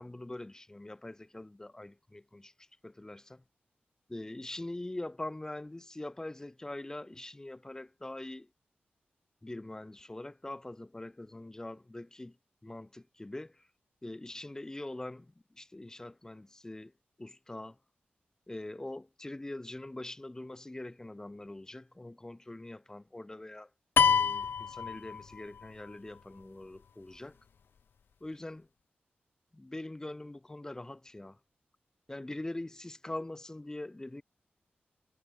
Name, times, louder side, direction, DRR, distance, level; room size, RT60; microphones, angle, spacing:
voice 1, 0.0-2.5 2.8-3.4 4.1-8.5 9.4-12.3 12.6-13.7 14.0-16.9 17.2-17.8 18.5-23.7 24.1-27.4 28.2-28.7 29.5-31.4 32.1-34.2, left 1 dB, 15° left, 6.9 m, -43 dB
sound 1, 24.0-25.7, left 7 dB, 85° left, 1.5 m, -27 dB
wide cardioid pair, 120°, 4 cm